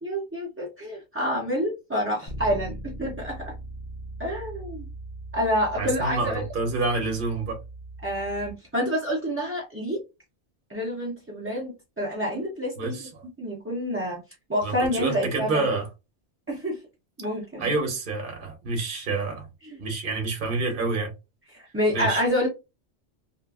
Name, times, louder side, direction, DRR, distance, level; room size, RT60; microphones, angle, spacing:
voice 1, 0.0-3.5 4.2-4.8 5.3-6.4 8.0-10.0 10.7-13.0 13.4-14.2 14.5-15.6 16.5-16.8 17.2-17.7 19.7-19.8 21.5-22.5, equal, 20° right, 0.4 m, -28 dB
Bass guitar, 2.3-8.5, right 1 dB, 50° left, 0.8 m, -39 dB
voice 2, 5.8-7.6 12.8-13.2 14.6-15.9 17.6-19.5 19.8-21.1 21.9-22.2, right 3 dB, 50° right, 0.9 m, -28 dB
2.8 x 2.4 x 2.3 m
omnidirectional pair, 1.2 m